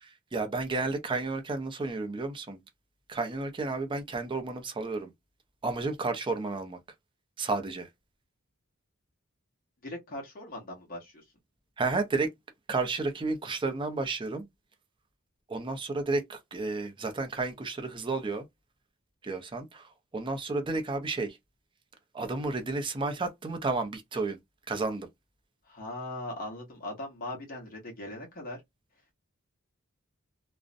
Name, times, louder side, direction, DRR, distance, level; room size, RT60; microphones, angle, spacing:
voice 1, 0.0-2.6 3.1-5.1 5.6-6.8 7.4-7.9 11.8-12.3 12.7-14.4 15.5-18.4 19.2-19.9 20.1-21.4 22.1-24.4 24.7-25.1, right 3 dB, 25° right, 0.4 m, -32 dB
voice 2, 9.8-11.3 25.6-28.6, left 1 dB, 40° left, 0.9 m, -40 dB
2.5 x 2.0 x 2.5 m
head